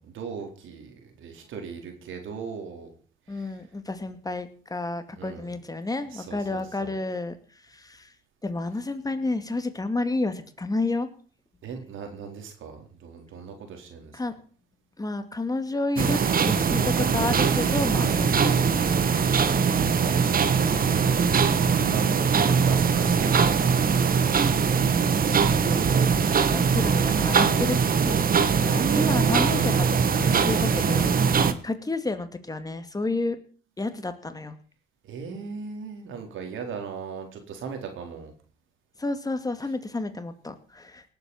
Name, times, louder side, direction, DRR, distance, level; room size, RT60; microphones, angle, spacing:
voice 1, 0.0-2.9 3.3-3.6 5.1-5.5 6.1-6.9 11.6-14.2 21.8-22.3 22.6-24.0 28.5-29.5 35.0-38.3, right 6 dB, 80° right, 4 dB, 4.2 m, -37 dB
voice 2, 3.3-7.4 7.7-8.1 8.4-11.1 14.1-14.3 15.0-16.2 16.5-18.7 18.9-19.7 22.5-22.7 25.6-26.2 26.5-27.8 28.1-28.3 28.6-31.1 31.6-33.4 33.8-34.6 39.0-41.0, left 2 dB, 20° left, 9 dB, 2.2 m, -30 dB
sound 1, 16.0-31.5, right 6 dB, 45° right, 1.4 m, -22 dB
18.5 x 8.1 x 7.3 m, 0.43 s
cardioid pair, 90°, 20 cm